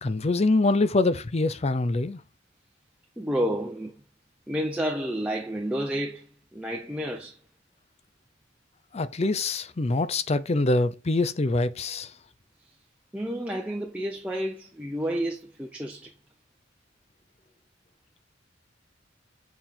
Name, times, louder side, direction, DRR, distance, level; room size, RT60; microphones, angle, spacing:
voice 1, 0.0-2.2 8.9-12.1, left 2 dB, 35° left, 0.5 m, -24 dB
voice 2, 3.2-4.0 4.5-7.4 13.1-16.1, equal, 5° right, 0.7 m, -30 dB
7.0 x 4.4 x 5.6 m
head